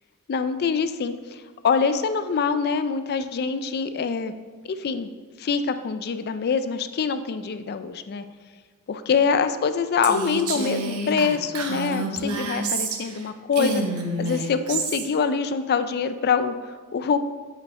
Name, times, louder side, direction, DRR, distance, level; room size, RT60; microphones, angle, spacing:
voice 1, 0.3-4.3 4.6-5.1 5.4-8.2 8.9-13.8 14.2-17.2, left 5 dB, 45° left, 11 dB, 0.4 m, -25 dB
Female speech woman speaking, 10.0-13.2 13.5-15.1, right 3 dB, 75° right, 0.9 m, -28 dB
8.3 x 5.2 x 3.6 m, 1.5 s
head